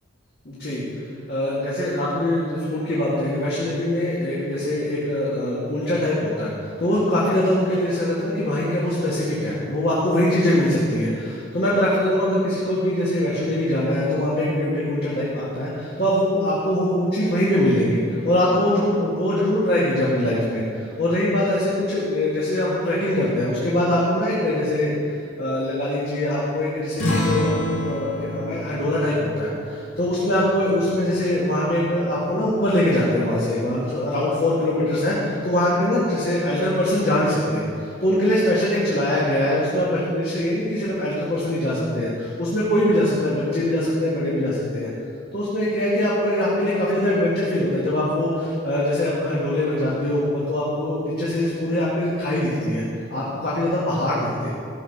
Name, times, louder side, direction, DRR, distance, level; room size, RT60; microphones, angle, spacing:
voice 1, 0.5-0.8 1.3-24.9 25.4-27.5 27.8-44.9 45.3-52.8 53.1-54.5, left 1 dB, 50° left, -7 dB, 1.8 m, -22 dB
sound 1, 27.0-32.0, equal, 80° left, 2.4 m, -29 dB
13.5 x 6.7 x 5.4 m, 2.5 s
head